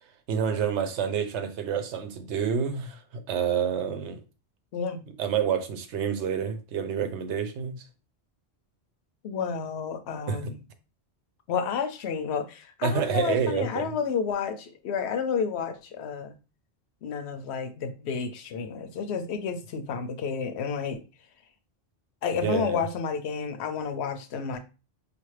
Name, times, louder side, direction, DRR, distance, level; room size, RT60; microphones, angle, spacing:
voice 1, 0.3-3.0 3.3-4.2 5.2-7.8 10.3-10.4 12.8-13.9 22.4-22.8, right 7 dB, 80° right, 1.0 m, -28 dB
voice 2, 4.7-5.1 9.2-10.7 11.5-16.4 17.0-21.0 22.2-24.6, left 6 dB, 75° left, 0.8 m, -31 dB
5.0 x 2.5 x 3.2 m
omnidirectional pair, 1.1 m